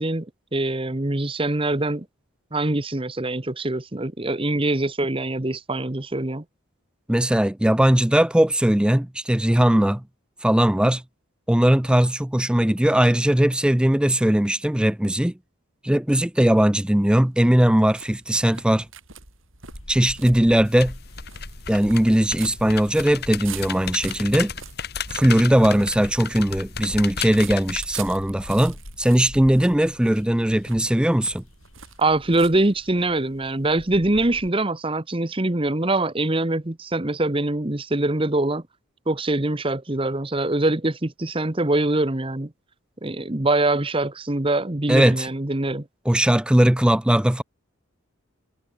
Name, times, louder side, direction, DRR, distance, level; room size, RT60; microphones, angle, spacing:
voice 1, 0.0-2.1 2.5-6.4 32.0-38.6 39.1-42.5 43.0-45.8, right 2 dB, 25° right, 1.1 m, -23 dB
voice 2, 7.1-10.0 10.4-11.0 11.5-15.3 15.8-18.9 19.9-21.0 21.7-24.5 25.1-31.4 44.9-45.3 46.1-47.4, right 1 dB, 5° right, 0.4 m, -19 dB
sound 1, 16.6-33.1, right 7 dB, 65° right, 5.5 m, -44 dB
sound 2, 19.7-34.5, left 1 dB, 80° left, 3.0 m, -44 dB
sound 3, 20.6-27.8, left 7 dB, 50° left, 2.2 m, -34 dB
head